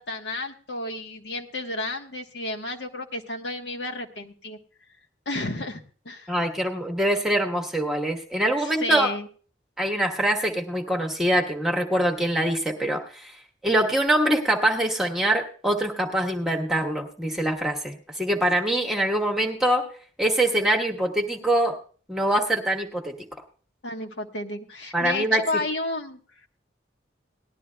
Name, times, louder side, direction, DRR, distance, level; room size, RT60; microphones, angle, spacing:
voice 1, 0.0-4.6 5.3-6.3 8.6-9.3 23.8-26.5, left 2 dB, 70° left, 3 dB, 1.1 m, -32 dB
voice 2, 6.3-9.1 9.8-13.4 13.6-19.8 20.2-21.7 22.1-23.1 24.9-25.4, right 1 dB, ahead, 1 dB, 1.1 m, -24 dB
19.0 x 11.5 x 2.2 m, 0.41 s
head